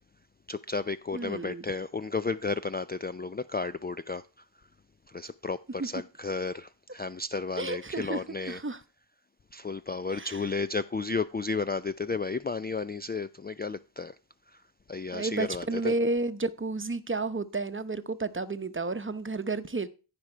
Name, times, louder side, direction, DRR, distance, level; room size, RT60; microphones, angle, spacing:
voice 1, 0.5-4.2 5.1-8.6 9.5-14.1 14.5-14.6 14.9-15.9, left 4 dB, 20° left, 0.4 m, -33 dB
voice 2, 1.1-1.6 5.8-5.9 7.6-8.8 10.1-10.5 15.1-19.9, right 3 dB, 25° right, 0.9 m, -31 dB
14.5 x 5.0 x 4.4 m
cardioid pair, 45°, 47 cm